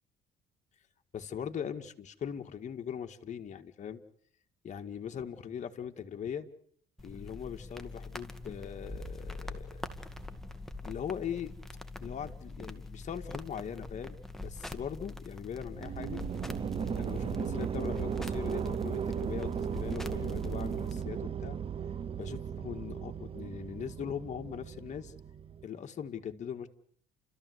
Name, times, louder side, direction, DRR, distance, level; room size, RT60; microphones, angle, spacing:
voice 1, 1.1-4.0 4.6-6.5 7.0-9.8 10.8-11.5 12.0-16.2 16.8-21.6 22.2-25.1 25.6-26.7, left 8 dB, 45° left, 5 dB, 2.0 m, -40 dB
sound 1, 7.0-21.0, left 2 dB, ahead, 2.2 m, -44 dB
sound 2, 15.7-25.6, right 7 dB, 35° right, 1.0 m, -36 dB
30.0 x 14.5 x 8.1 m, 0.63 s
cardioid pair, 110°, 17 cm